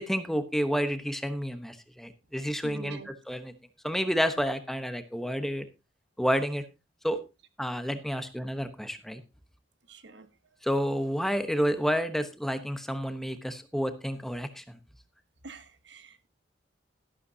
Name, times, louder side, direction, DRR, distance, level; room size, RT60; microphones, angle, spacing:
voice 1, 0.0-3.5 3.8-5.7 6.2-6.6 7.0-7.2 7.6-9.2 10.6-14.8, equal, ahead, 1.0 m, -30 dB
voice 2, 2.6-3.1 9.9-10.3 15.4-16.3, right 4 dB, 80° right, 1.4 m, -45 dB
12.5 x 12.0 x 2.8 m
head